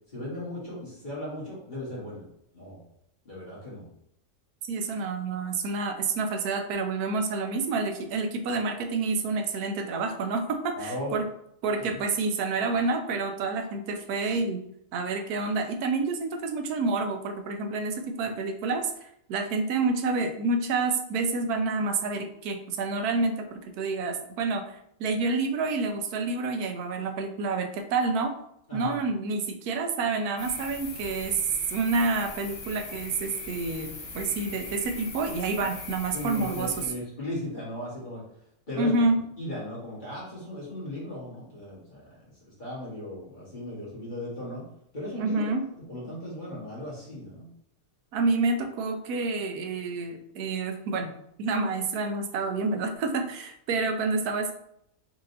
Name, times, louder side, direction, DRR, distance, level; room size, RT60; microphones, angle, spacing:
voice 1, 0.1-2.2 2.5-2.8 3.2-3.9 10.8-11.1 11.8-12.0 28.7-28.9 35.6-35.7 36.1-38.2 38.7-38.9 39.4-44.7 44.9-45.5 45.8-47.5, left 1 dB, 35° left, -7 dB, 1.6 m, -37 dB
voice 2, 4.6-11.3 11.6-14.6 14.9-28.3 28.7-31.4 31.7-36.8 38.8-39.2 45.2-45.6 48.1-51.1 51.4-54.5, right 3 dB, 80° right, 6 dB, 1.1 m, -28 dB
sound 1, 30.4-36.9, left 3 dB, 50° left, 1.0 m, -40 dB
4.4 x 3.7 x 2.7 m, 0.74 s
omnidirectional pair, 1.6 m